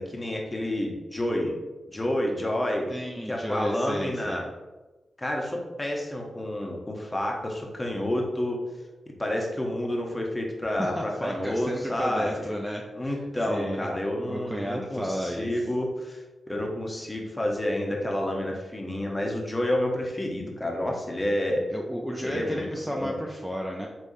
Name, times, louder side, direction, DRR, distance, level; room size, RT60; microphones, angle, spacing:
voice 1, 0.0-1.5 1.9-2.9 3.3-4.4 5.2-8.6 9.2-12.5 12.9-21.6 22.2-23.1, left 1 dB, 20° left, 0 dB, 0.9 m, -29 dB
voice 2, 2.9-4.4 10.8-13.1 13.5-13.9 14.3-15.6 21.7-23.9, equal, ahead, 0 dB, 0.4 m, -33 dB
3.5 x 3.1 x 2.7 m, 1.2 s
supercardioid pair, 40°, 0 cm